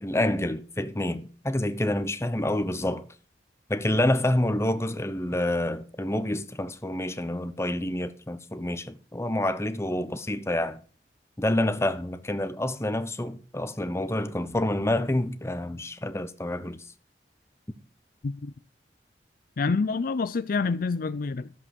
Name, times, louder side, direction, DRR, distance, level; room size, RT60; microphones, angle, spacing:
voice 1, 0.0-3.1 3.7-10.8 11.4-16.8, left 1 dB, 15° left, 0.8 m, -28 dB
voice 2, 19.6-21.5, left 4 dB, 55° left, 0.4 m, -27 dB
13.5 x 7.6 x 5.3 m
head